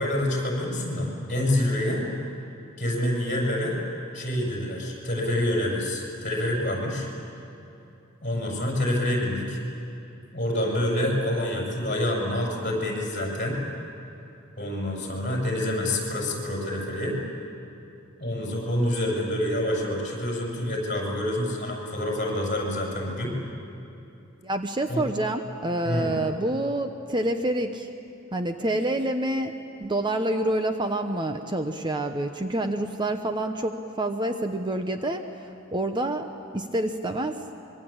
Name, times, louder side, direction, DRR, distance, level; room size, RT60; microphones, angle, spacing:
voice 1, 0.0-2.1 2.8-3.8 4.1-7.1 8.2-9.6 10.3-13.6 14.6-17.2 18.2-23.3 24.9-25.0 25.8-26.1, left 1 dB, 40° left, -1 dB, 7.0 m, -27 dB
voice 2, 24.4-27.9 28.3-29.5 29.8-36.3 36.5-37.4, right 1 dB, 25° right, 6 dB, 0.9 m, -27 dB
25.0 x 23.5 x 8.8 m, 2.8 s
head